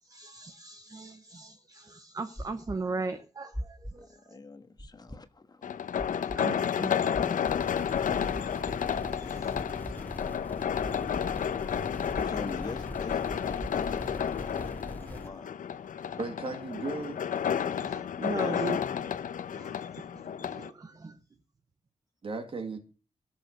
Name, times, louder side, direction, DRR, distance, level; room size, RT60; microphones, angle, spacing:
voice 1, 0.0-4.4 6.4-6.9 7.2-7.5 8.7-9.6 11.3-11.5 15.0-15.3 16.1-16.2 17.8-19.1 19.5-21.2, right 3 dB, 25° right, 0.9 m, -39 dB
sound 1, 2.4-2.8 3.5-3.9 4.8-5.2 6.0-6.4 7.1-7.5 8.3-8.7 9.5-9.9 10.8-11.2 12.1-12.5 13.3-13.7, equal, 5° right, 3.7 m, -39 dB
voice 2, 4.3-5.7 6.2-6.3 9.1-10.1 12.0-15.5 17.7-18.0 18.3-18.9, left 3 dB, 30° left, 1.4 m, -45 dB
sound 2, 5.6-20.7, left 8 dB, 80° left, 0.8 m, -31 dB
sound 3, 7.5-15.3, left 1 dB, 15° left, 1.9 m, -41 dB
voice 3, 16.2-17.2 22.2-22.8, right 3 dB, 40° right, 2.3 m, -35 dB
18.5 x 6.9 x 6.5 m
wide cardioid pair, 165°, 13 cm